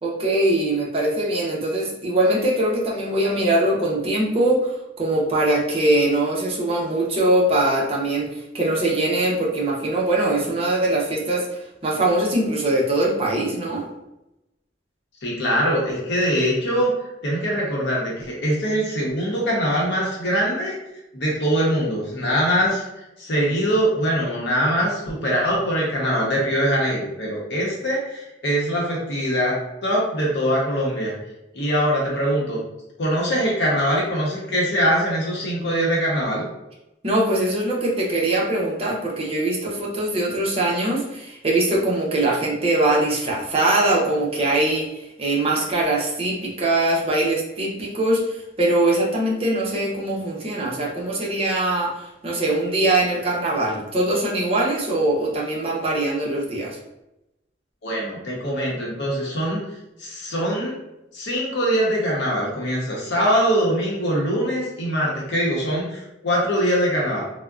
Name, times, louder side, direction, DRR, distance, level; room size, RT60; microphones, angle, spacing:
voice 1, 0.0-13.9 37.0-44.9 45.2-56.8, right 1 dB, 30° right, -3 dB, 0.6 m, -22 dB
voice 2, 15.2-16.9 17.2-20.8 21.1-22.8 23.2-31.1 31.5-32.6 33.0-36.4 57.8-59.6 60.0-60.8 61.1-67.2, equal, 70° left, -4 dB, 0.8 m, -22 dB
3.6 x 2.1 x 2.3 m, 0.90 s
head